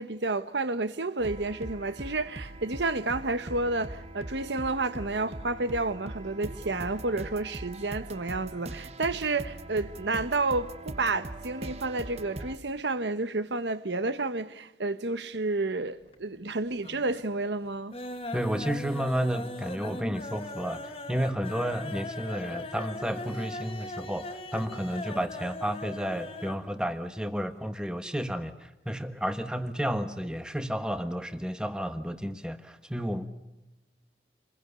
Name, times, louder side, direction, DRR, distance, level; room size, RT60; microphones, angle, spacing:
voice 1, 0.0-17.9, right 3 dB, 80° right, 1.1 m, -30 dB
sound 1, 1.2-12.6, right 1 dB, 35° right, 1.0 m, -41 dB
sound 2, 15.9-16.5 16.8-17.3 17.6-26.7 26.9-27.0 27.3-27.4, left 2 dB, 30° left, 2.0 m, -39 dB
voice 2, 18.3-33.3, equal, 5° right, 1.3 m, -32 dB
27.5 x 22.0 x 6.9 m
head